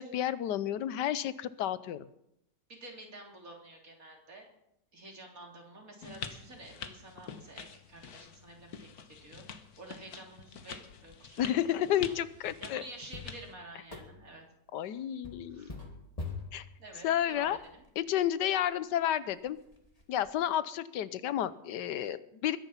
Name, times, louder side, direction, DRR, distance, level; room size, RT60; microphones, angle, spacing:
voice 1, 0.0-2.0 11.4-12.8 14.7-15.7 16.5-16.7 17.0-17.6 18.0-19.6 20.1-22.6, left 11 dB, 85° left, 15 dB, 1.4 m, -31 dB
voice 2, 2.7-4.5 4.9-8.9 9.2-11.5 12.0-12.1 12.6-14.4 15.5-15.9 16.8-17.8, right 2 dB, 55° right, 0 dB, 3.6 m, -50 dB
sound 1, 6.0-13.5, left 6 dB, 65° left, 1.6 m, -46 dB
sound 2, 13.1-14.5 15.2-17.9 18.5-18.6 19.0-19.1 19.5-20.3, left 3 dB, 20° left, 2.0 m, -45 dB
21.5 x 10.5 x 5.7 m, 0.80 s
omnidirectional pair, 1.8 m